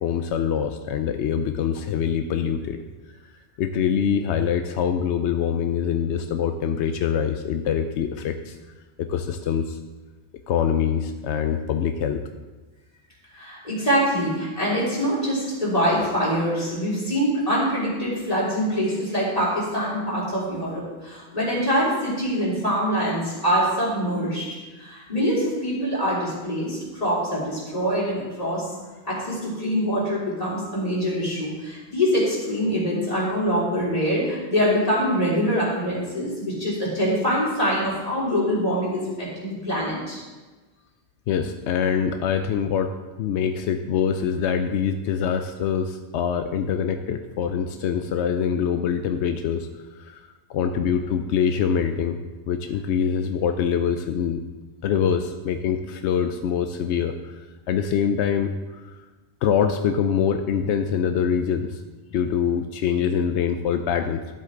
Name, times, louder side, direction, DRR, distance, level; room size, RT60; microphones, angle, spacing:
voice 1, 0.0-2.8 3.6-8.6 9.0-9.8 10.5-12.2 41.3-42.9 43.2-49.7 49.9-52.2 52.5-54.4 54.8-57.3 57.7-58.5 59.4-61.8 62.1-64.4, left 7 dB, 90° left, 7 dB, 0.9 m, -24 dB
voice 2, 13.3-24.5 24.8-28.7 29.0-40.2, equal, 35° left, -7 dB, 3.5 m, -24 dB
12.5 x 7.7 x 3.8 m, 1.2 s
omnidirectional pair, 1.1 m